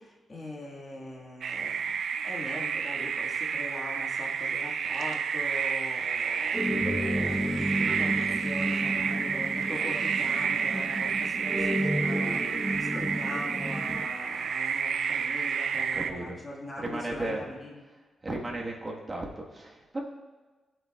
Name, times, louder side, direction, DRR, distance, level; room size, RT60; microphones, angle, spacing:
voice 1, 0.0-17.8, left 1 dB, 25° left, -3 dB, 1.7 m, -42 dB
sound 1, 1.4-16.1, right 6 dB, 65° right, 0.5 m, -30 dB
sound 2, 6.5-14.0, equal, 5° right, 0.8 m, -32 dB
voice 2, 15.7-16.4 16.8-17.4 18.2-20.0, right 2 dB, 25° right, -1 dB, 1.4 m, -35 dB
17.0 x 7.6 x 2.3 m, 1.2 s
wide cardioid pair, 145°, 0 cm